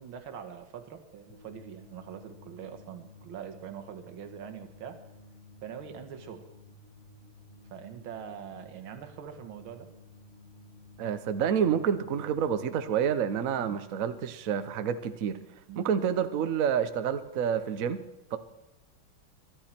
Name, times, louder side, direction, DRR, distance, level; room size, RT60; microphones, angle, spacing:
voice 1, 0.0-5.0 5.6-6.5 7.7-9.9 13.5-13.8 15.7-15.9, right 8 dB, 70° right, 7 dB, 2.1 m, -43 dB
sound 1, 1.3-14.4, left 2 dB, 80° left, 6.5 m, -54 dB
voice 2, 11.0-15.4 15.8-18.0 18.3-18.4, right 8 dB, 50° right, 10 dB, 1.1 m, -28 dB
23.5 x 12.0 x 4.5 m, 0.86 s
omnidirectional pair, 2.4 m